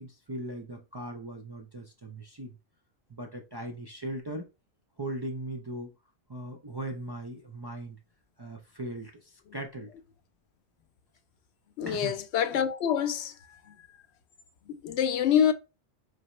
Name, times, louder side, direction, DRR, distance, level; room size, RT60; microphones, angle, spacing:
voice 1, 0.0-2.6 3.1-4.5 5.0-5.9 6.3-8.0 8.4-9.9 11.9-12.1, right 1 dB, 35° right, 0.4 m, -39 dB
voice 2, 11.8-13.3 14.7-15.5, left 9 dB, 80° left, 0.9 m, -26 dB
4.1 x 3.3 x 3.0 m
omnidirectional pair, 1.1 m